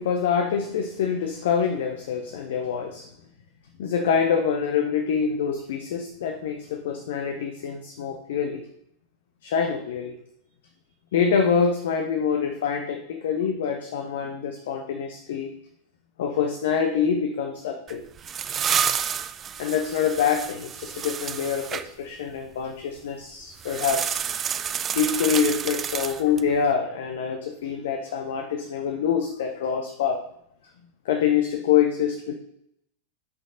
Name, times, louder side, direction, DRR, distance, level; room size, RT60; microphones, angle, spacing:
voice 1, 0.0-3.1 3.8-8.6 9.4-10.2 11.1-15.5 16.2-18.0 19.6-24.2 24.9-30.2 31.0-32.3, left 7 dB, 55° left, 6 dB, 0.8 m, -25 dB
sound 1, 17.9-21.9 23.6-26.5, right 8 dB, 25° right, 0.4 m, -29 dB
12.0 x 5.3 x 3.8 m, 0.75 s
figure-of-eight pair, 90°, 0 cm